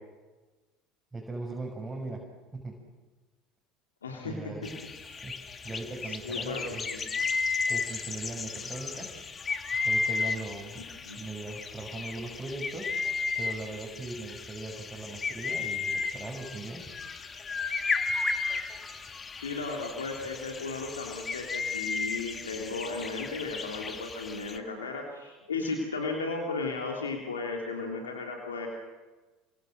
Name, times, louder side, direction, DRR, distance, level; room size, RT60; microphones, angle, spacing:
voice 1, 1.1-2.3 2.5-2.7 4.2-4.7 5.2-6.9 7.6-9.1 9.7-10.8 11.2-12.9 13.4-16.8, right 2 dB, 10° right, -3 dB, 6.5 m, -39 dB
voice 2, 4.0-4.7 5.1-5.2 6.1-6.6 6.9-7.0 11.0-11.3 19.4-28.7, left 3 dB, 80° left, 1 dB, 3.2 m, -35 dB
sound 1, 4.6-24.6, left 4 dB, 30° left, 2.2 m, -34 dB
30.0 x 25.5 x 6.6 m, 1.2 s
figure-of-eight pair, 70°, 0 cm